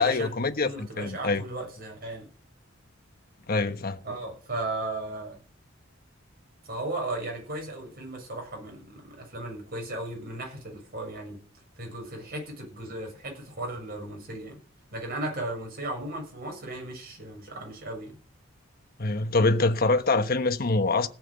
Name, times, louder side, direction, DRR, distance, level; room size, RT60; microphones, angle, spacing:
voice 1, 0.0-1.4 3.5-4.0 19.0-21.1, left 3 dB, 45° left, 1.2 m, -24 dB
voice 2, 0.6-2.3 4.0-5.4 6.7-11.4 11.8-14.6 14.9-18.1, right 2 dB, 50° right, 7.3 m, -36 dB
16.5 x 7.5 x 8.0 m
head